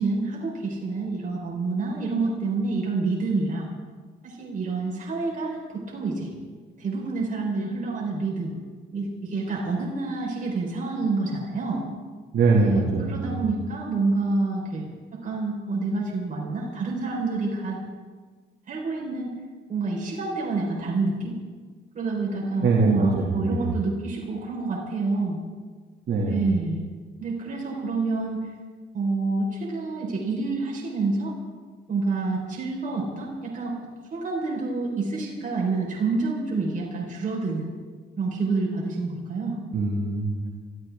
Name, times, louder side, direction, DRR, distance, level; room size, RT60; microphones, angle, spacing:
voice 1, 0.0-3.7 4.2-6.3 6.8-8.5 8.9-11.8 12.5-14.8 15.1-17.8 18.7-19.3 19.7-21.4 21.9-25.4 26.2-26.8 27.2-28.5 28.9-31.3 31.9-33.8 34.1-37.6 38.2-39.6, right 3 dB, 40° right, -3 dB, 4.2 m, -28 dB
voice 2, 12.3-13.5 22.6-23.8 26.1-26.4 39.7-40.5, right 3 dB, 60° right, -3 dB, 2.3 m, -23 dB
24.0 x 14.0 x 3.6 m, 1.5 s
cardioid pair, 90°, 20 cm